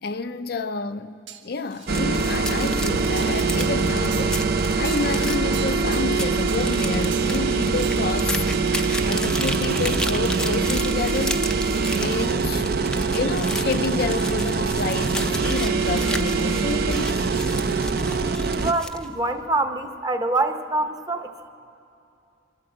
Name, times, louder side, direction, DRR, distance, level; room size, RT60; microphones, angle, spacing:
voice 1, 0.0-4.5 4.8-8.5 9.0-11.4 12.0-12.7 13.1-17.3, left 4 dB, 55° left, 0.5 m, -29 dB
sound 1, 1.3-2.2 3.2-4.4 4.8-5.1 5.5-6.2 6.5-6.6 7.1-7.5 7.8-8.0 8.5-8.7, right 9 dB, 85° right, 1.4 m, -40 dB
sound 2, 1.7-19.1, left 1 dB, 5° left, 0.5 m, -34 dB
sound 3, 1.9-18.7, right 4 dB, 55° right, 0.6 m, -23 dB
voice 2, 18.6-21.5, right 2 dB, 20° right, 0.9 m, -25 dB
25.0 x 13.5 x 7.7 m
head